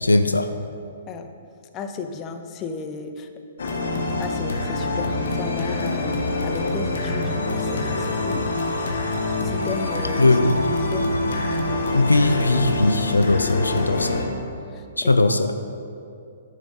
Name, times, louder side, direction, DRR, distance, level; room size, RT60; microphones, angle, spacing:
voice 1, 0.0-0.5 10.2-10.5 11.9-14.3 15.0-15.4, left 2 dB, 90° left, 8 dB, 0.5 m, -19 dB
voice 2, 1.7-3.3 4.2-6.2 6.4-8.5 9.4-10.3 10.7-11.6 14.7-15.3, left 5 dB, 25° left, 7 dB, 0.7 m, -34 dB
sound 1, 3.6-14.2, left 2 dB, 65° left, 1.3 m, -25 dB
10.5 x 6.6 x 5.3 m, 2.5 s
figure-of-eight pair, 120°, 0 cm